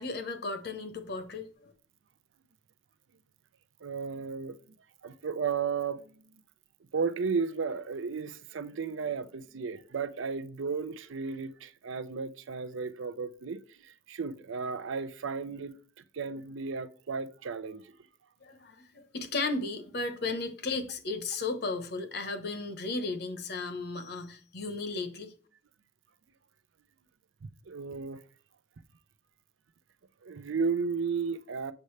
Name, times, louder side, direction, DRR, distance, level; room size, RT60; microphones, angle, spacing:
voice 1, 0.0-1.7 18.4-25.3, left 3 dB, 50° left, 1.0 m, -35 dB
voice 2, 3.8-4.6 5.0-6.1 6.9-15.8 16.1-17.9 27.4-28.2 30.2-31.7, right 5 dB, 70° right, 0.5 m, -34 dB
7.7 x 6.6 x 3.2 m
head